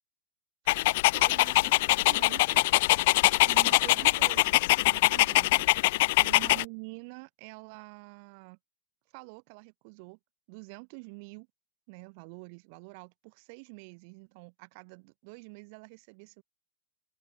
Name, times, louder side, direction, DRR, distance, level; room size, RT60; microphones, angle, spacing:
Dog, 0.7-6.6, left 20 dB, 50° left, 0.7 m, -23 dB
voice 1, 1.0-2.7 3.5-4.6 4.9-5.7 6.2-8.6 9.1-10.2 10.5-11.5 11.9-16.4, right 33 dB, 45° right, 7.4 m, -47 dB
open air
figure-of-eight pair, 90°, 0 cm